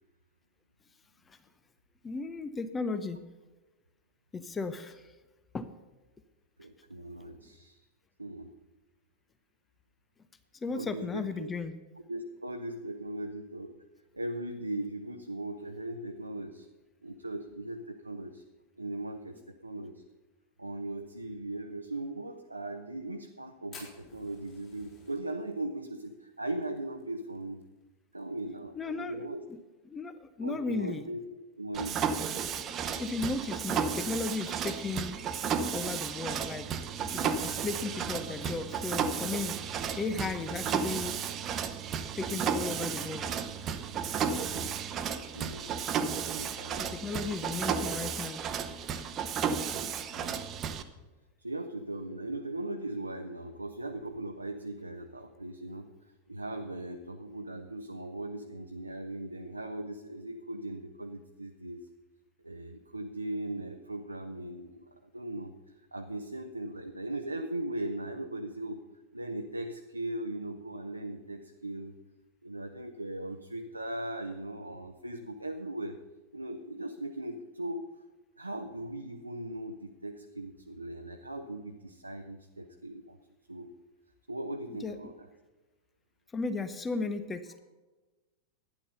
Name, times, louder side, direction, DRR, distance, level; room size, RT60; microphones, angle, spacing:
voice 1, 2.0-3.2 4.3-5.1 5.5-5.7 10.6-11.7 28.8-29.6 29.9-31.0 33.0-35.2 35.7-36.7 37.1-39.6 40.0-41.2 42.2-43.3 46.8-48.4 84.8-85.0 86.3-87.6, left 4 dB, 15° left, 12 dB, 0.7 m, -35 dB
voice 2, 6.6-7.8 8.2-8.5 10.7-11.5 12.1-13.7 14.1-16.7 17.0-18.4 18.8-20.0 20.6-27.6 28.1-29.4 30.4-31.2 31.6-32.0 45.3-45.8 46.3-46.9 50.1-50.5 51.4-55.9 56.3-61.9 62.4-65.5 65.9-68.8 69.1-71.9 72.4-76.0 76.3-77.8 78.4-83.2 83.5-83.7 84.3-85.3, right 1 dB, 85° right, 4 dB, 0.8 m, -39 dB
Fire, 23.7-28.2 28.5-28.6 28.8-28.9 29.3-29.7 30.2-30.3 31.4-31.5, left 4 dB, 35° left, 5.2 m, -53 dB
Mechanisms, 31.7-50.8, right 7 dB, 30° right, 0.9 m, -33 dB
12.0 x 10.0 x 5.6 m, 1.2 s
figure-of-eight pair, 90°, 0 cm